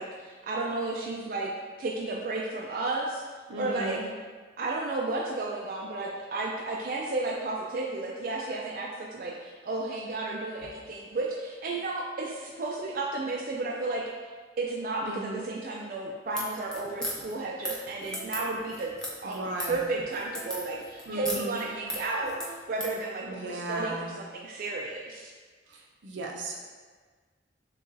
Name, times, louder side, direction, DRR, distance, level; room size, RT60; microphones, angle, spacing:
voice 1, 0.0-1.5 1.8-3.2 3.6-4.0 4.6-14.0 14.6-18.9 19.2-25.3, right 2 dB, 50° right, -2 dB, 0.3 m, -33 dB
voice 2, 3.5-4.0 15.0-15.4 19.2-19.9 21.1-21.6 23.2-24.1 25.7-26.6, right 2 dB, 80° right, -1 dB, 0.7 m, -36 dB
sound 1, 16.2-23.0, equal, 5° left, 0.5 m, -37 dB
6.6 x 2.4 x 2.6 m, 1.5 s
head